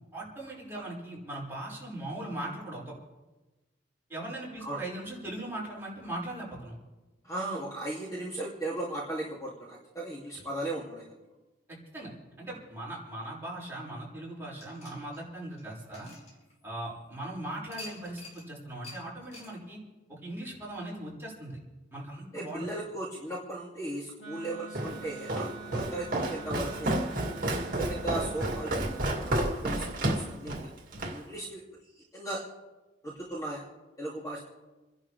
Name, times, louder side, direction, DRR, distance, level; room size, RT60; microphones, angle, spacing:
voice 1, 0.1-2.9 4.1-6.8 11.7-12.1 12.4-16.1 16.6-19.8 20.1-21.6 21.9-22.7, right 1 dB, 15° right, -6 dB, 5.4 m, -39 dB
voice 2, 7.2-11.1 22.3-27.1 27.8-30.7 31.1-31.6 32.1-32.4 33.0-33.7 34.0-34.4, right 1 dB, 20° left, -5 dB, 2.5 m, -37 dB
sound 1, 14.6-17.0 17.7-18.5 18.8-19.0 19.3-19.5, left 2 dB, 40° left, 5.5 m, -48 dB
Wind instrument woodwind instrument, 24.2-29.3, right 6 dB, 85° left, 3.4 m, -46 dB
Walk footsteps, 24.7-31.2, right 1 dB, 50° right, 2.1 m, -31 dB
29.0 x 11.0 x 3.4 m, 1.1 s
head